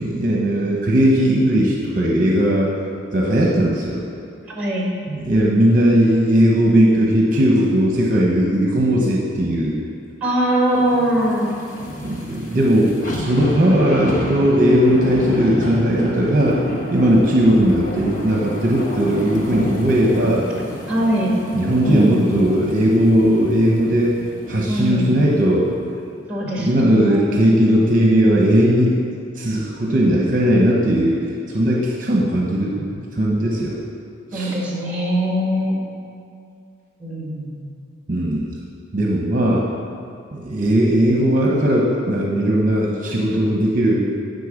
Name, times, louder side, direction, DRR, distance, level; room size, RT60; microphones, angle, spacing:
voice 1, 0.0-2.7 3.1-4.0 5.1-9.8 12.0-16.7 16.9-20.4 21.5-24.2 24.5-25.7 26.5-29.1 29.3-31.2 31.5-32.9 33.2-33.8 34.3-34.6 38.1-38.6 38.9-39.7 40.3-44.1, equal, 45° right, -2 dB, 0.9 m, -17 dB
voice 2, 4.5-4.9 10.2-11.6 20.9-21.3 21.9-22.2 24.7-25.2 26.3-27.5 34.3-35.8 37.0-37.7, equal, 10° right, -3 dB, 1.6 m, -21 dB
sound 1, 10.7-25.2 25.6-25.7, equal, 40° left, 1.2 m, -30 dB
10.0 x 4.0 x 7.2 m, 2.4 s
head